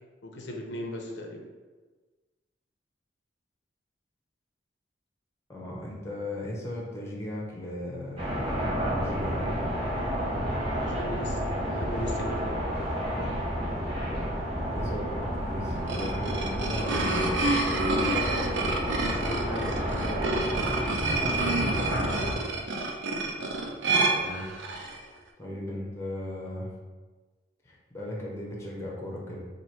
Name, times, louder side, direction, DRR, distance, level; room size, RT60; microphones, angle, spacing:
voice 1, 0.2-1.4 10.7-12.6 18.1-20.9, left 1 dB, 75° left, 1 dB, 0.6 m, -38 dB
voice 2, 5.5-9.5 14.7-18.2 24.1-24.5 25.4-26.7 27.6-29.4, left 1 dB, 15° left, -3 dB, 0.5 m, -37 dB
sound 1, 8.2-22.3, equal, 30° right, 0.9 m, -30 dB
sound 2, 15.7-25.0, right 2 dB, 90° right, 0.5 m, -29 dB
2.9 x 2.6 x 4.3 m, 1.3 s
head